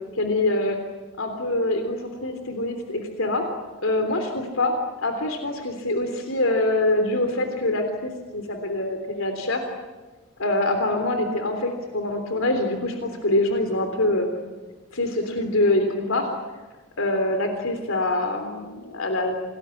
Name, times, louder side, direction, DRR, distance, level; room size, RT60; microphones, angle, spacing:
voice 1, 0.2-0.8 1.2-3.4 3.8-4.7 5.0-9.6 10.4-14.3 14.9-16.3 17.0-19.4, left 2 dB, 65° left, 6 dB, 3.4 m, -24 dB
28.5 x 20.0 x 9.9 m, 1.3 s
head